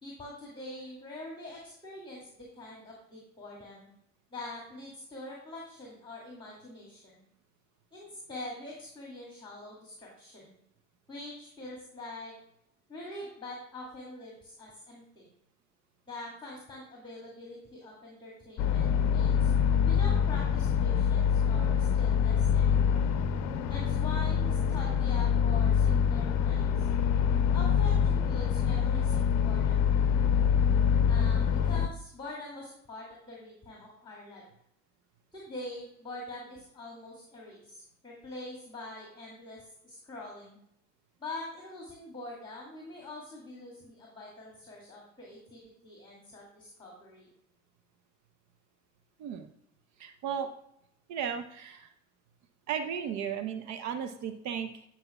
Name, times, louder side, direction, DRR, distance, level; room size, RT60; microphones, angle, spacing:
voice 1, 0.0-3.9 4.3-7.2 7.9-10.5 11.1-12.3 12.9-15.3 16.1-19.5 19.8-23.0 23.7-26.9 27.5-29.9 31.1-34.4 35.3-39.6 39.8-40.6 41.2-47.3, left 2 dB, 15° left, -3 dB, 2.4 m, -44 dB
sound 1, 18.6-31.9, left 7 dB, 50° left, 0.7 m, -25 dB
voice 2, 49.2-49.5 50.0-50.5 51.1-51.9 52.7-54.8, right 8 dB, 50° right, 8 dB, 0.8 m, -35 dB
10.5 x 5.7 x 2.3 m, 0.74 s
hypercardioid pair, 75°, 37 cm